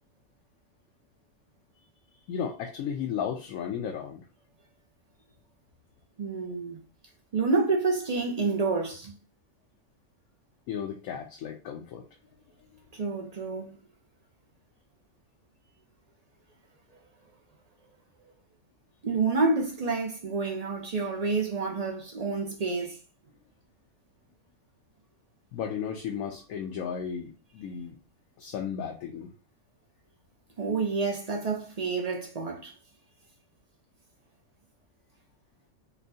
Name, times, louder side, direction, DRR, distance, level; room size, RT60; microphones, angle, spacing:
voice 1, 2.3-4.2 10.7-12.0 25.5-27.9 28.4-29.3, left 7 dB, 75° left, 1.0 m, -34 dB
voice 2, 6.2-6.8 7.3-9.1 12.9-13.8 19.0-23.0 30.6-32.7, right 4 dB, 55° right, 0.4 m, -28 dB
4.3 x 2.3 x 2.6 m
omnidirectional pair, 1.5 m